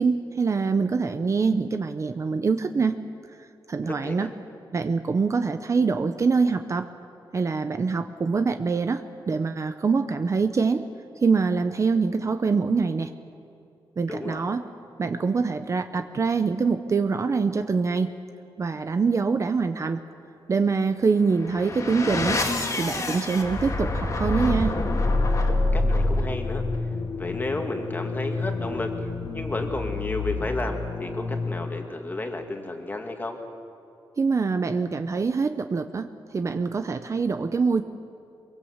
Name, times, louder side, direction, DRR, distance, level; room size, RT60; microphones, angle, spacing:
voice 1, 0.0-3.0 3.7-4.3 4.7-6.9 7.3-10.8 11.2-13.1 14.0-14.6 15.0-18.1 18.6-20.0 20.5-22.4 22.8-24.8 34.2-37.8, right 4 dB, 35° right, 9 dB, 0.8 m, -24 dB
voice 2, 3.9-4.3 14.1-14.4 25.7-26.6 27.2-28.9 29.3-33.4, left 2 dB, 20° left, 4 dB, 2.1 m, -32 dB
sound 1, 21.2-31.9, left 2 dB, 40° left, 2.4 m, -27 dB
23.5 x 22.5 x 8.1 m, 2.6 s
wide cardioid pair, 175°, 9 cm